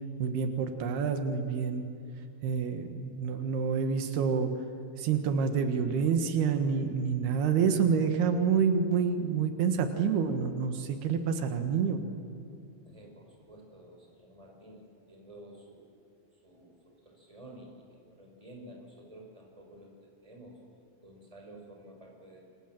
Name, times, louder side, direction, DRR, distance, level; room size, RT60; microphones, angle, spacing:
voice 1, 0.2-1.9 2.4-4.5 5.0-12.0, right 6 dB, 90° right, 6 dB, 3.6 m, -28 dB
voice 2, 12.8-15.9 16.4-20.6 21.0-22.4, right 1 dB, 10° right, 0 dB, 5.6 m, -51 dB
28.5 x 25.5 x 7.7 m, 2.6 s
omnidirectional pair, 4.4 m